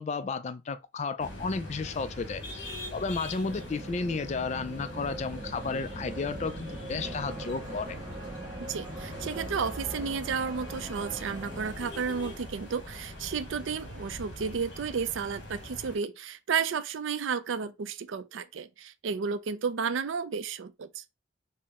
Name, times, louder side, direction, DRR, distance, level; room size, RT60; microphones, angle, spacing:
voice 1, 0.0-8.0, left 4 dB, 35° left, 0.3 m, -33 dB
sound 1, 1.2-16.0, left 1 dB, 60° left, 1.3 m, -42 dB
sound 2, 3.4-11.8, right 2 dB, 20° right, 0.5 m, -43 dB
sound 3, 7.0-14.5, right 2 dB, 10° left, 1.6 m, -51 dB
voice 2, 8.7-21.0, right 6 dB, 75° right, 0.4 m, -32 dB
4.3 x 2.1 x 3.5 m
head